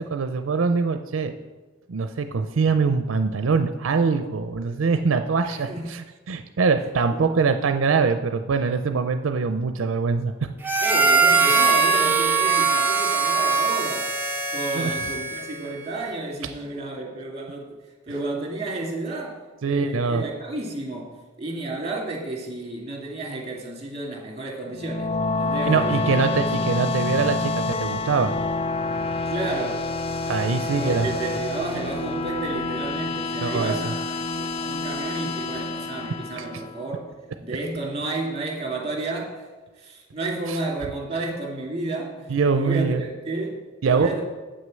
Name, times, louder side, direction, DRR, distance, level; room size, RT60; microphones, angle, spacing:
voice 1, 0.0-1.3 1.9-10.5 14.7-15.0 19.6-20.2 25.7-28.4 30.3-31.4 33.4-33.9 35.6-35.7 36.4-36.5 40.5-40.6 42.3-43.0 43.8-44.1, right 4 dB, 80° right, 8 dB, 0.5 m, -23 dB
voice 2, 5.4-5.9 7.1-7.4 10.8-14.1 14.5-17.7 18.1-26.3 26.6-26.7 29.3-29.9 30.8-37.1 37.4-39.5 39.8-43.6 43.9-44.2, right 2 dB, 30° right, -1 dB, 2.3 m, -32 dB
Harmonica, 10.6-15.6, right 5 dB, 10° right, 0.7 m, -21 dB
sound 1, 24.7-37.1, left 3 dB, 30° left, 0.4 m, -28 dB
8.1 x 6.3 x 7.4 m, 1.3 s
head